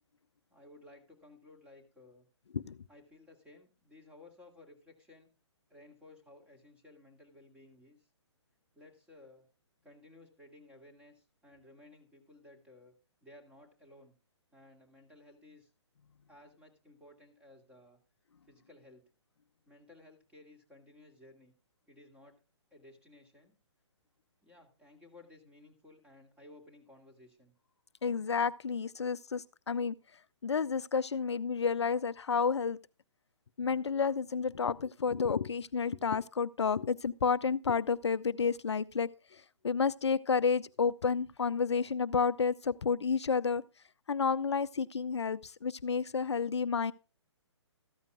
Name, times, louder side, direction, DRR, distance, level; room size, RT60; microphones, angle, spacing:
voice 1, 0.5-2.3 2.9-5.3 5.7-8.1 8.7-9.5 9.8-12.9 13.2-14.2 14.5-15.7 16.3-18.0 18.4-19.0 19.7-21.5 21.9-22.4 22.7-23.5 24.4-27.5, left 2 dB, 5° right, 2.3 m, -57 dB
voice 2, 28.0-29.9 30.4-32.8 33.6-43.6 44.1-46.9, left 5 dB, 70° left, 0.5 m, -31 dB
14.0 x 13.5 x 2.3 m
figure-of-eight pair, 130°, 15 cm